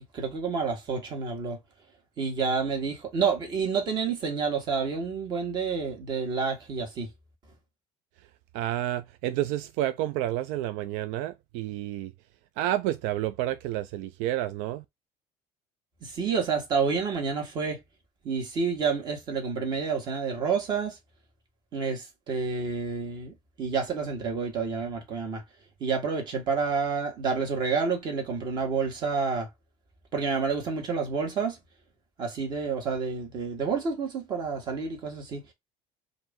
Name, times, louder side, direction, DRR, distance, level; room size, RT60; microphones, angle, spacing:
voice 1, 0.0-1.6 2.2-7.1 16.0-17.8 18.2-21.0 21.7-25.4 25.8-29.5 30.1-31.6 32.2-35.4, right 5 dB, 35° right, 1.7 m, -29 dB
voice 2, 8.5-12.1 12.6-14.8, right 13 dB, 90° right, 0.4 m, -30 dB
4.8 x 2.7 x 3.7 m
cardioid pair, 170°, 12 cm